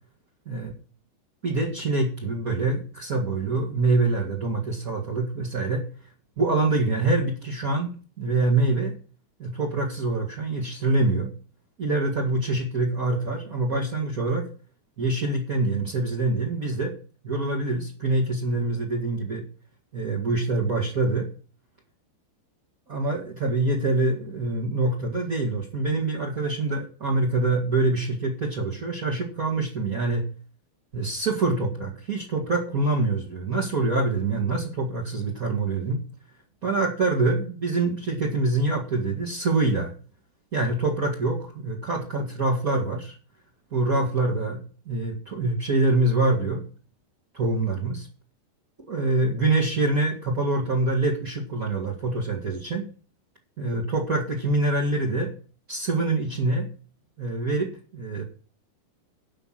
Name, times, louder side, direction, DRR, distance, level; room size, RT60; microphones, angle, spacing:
voice 1, 1.4-5.8 6.4-7.9 8.2-8.9 9.4-11.3 11.8-14.5 15.0-16.9 17.2-19.4 19.9-21.3 22.9-30.2 30.9-36.0 36.6-39.9 40.5-43.1 43.7-46.6 47.3-48.1 48.9-52.8 53.6-55.3 55.7-56.7 57.2-58.2, right 2 dB, 40° right, -3 dB, 1.2 m, -25 dB
12.0 x 5.7 x 7.6 m, 0.38 s
omnidirectional pair, 5.0 m